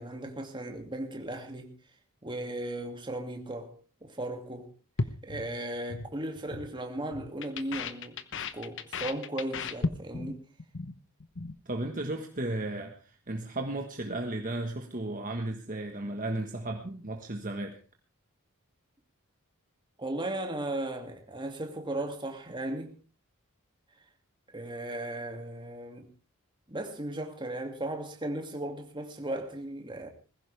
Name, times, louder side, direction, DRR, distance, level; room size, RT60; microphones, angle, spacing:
voice 1, 0.0-1.7 2.2-3.7 4.0-4.7 5.2-10.4 20.0-22.9 24.5-26.1 26.7-30.1, right 1 dB, 20° right, 2.5 m, -36 dB
sound 1, 5.0-6.1 6.4-6.7 7.0-10.3 10.6-10.9 11.2-11.6, left 4 dB, 55° left, 1.0 m, -35 dB
voice 2, 11.6-17.8, right 2 dB, 40° right, 1.5 m, -34 dB
20.5 x 15.5 x 3.5 m
head